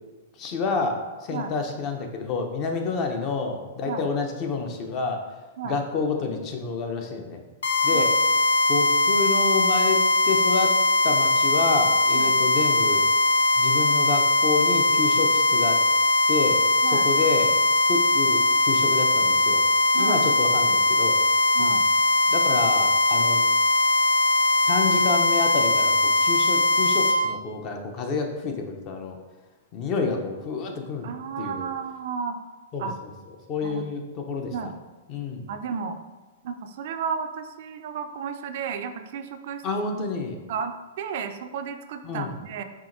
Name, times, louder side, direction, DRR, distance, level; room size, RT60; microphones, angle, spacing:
voice 1, 0.4-5.2 5.6-7.4 7.8-8.1 8.7-10.0 10.3-10.7 11.0-13.0 13.6-15.8 16.3-17.5 17.9-19.6 19.9-21.2 21.6-21.8 22.3-23.4 24.6-25.9 26.2-29.2 29.7-31.1 31.4-31.7 32.7-33.1 33.5-34.5 35.1-35.5 39.6-40.4 42.0-42.3, left 4 dB, 40° left, 3 dB, 0.6 m, -28 dB
sound 1, 7.6-27.2, left 2 dB, 75° left, 0.8 m, -20 dB
voice 2, 19.9-20.3 21.5-21.9 31.0-32.4 32.8-33.0 33.6-33.9 34.5-34.8 35.5-36.0 36.4-39.6 40.5-42.6, right 6 dB, 60° right, 8 dB, 0.3 m, -33 dB
4.8 x 2.8 x 2.6 m, 1.2 s
hypercardioid pair, 115°, 0 cm